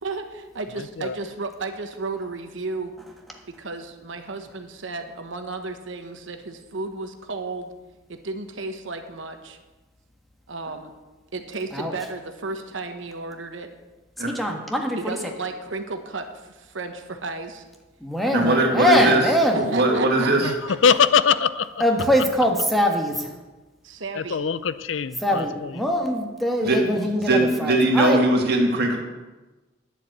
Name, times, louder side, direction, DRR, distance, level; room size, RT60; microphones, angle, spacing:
voice 1, 0.0-2.9 3.5-7.7 8.1-9.6 10.5-10.9 11.3-13.7 14.9-17.6 18.3-18.4 19.5-21.0 23.8-24.4, right 3 dB, 80° right, 6 dB, 1.2 m, -33 dB
voice 2, 0.8-1.2 20.2-21.8 24.1-25.7, left 7 dB, 80° left, 16 dB, 0.5 m, -22 dB
voice 3, 14.3-15.2 18.0-19.6 21.8-23.3 25.2-28.2, equal, ahead, 1 dB, 1.5 m, -22 dB
voice 4, 18.3-19.2 19.6-20.5 26.6-26.8 27.2-29.0, right 2 dB, 60° right, 2 dB, 2.1 m, -20 dB
10.5 x 7.2 x 8.0 m, 1.2 s
head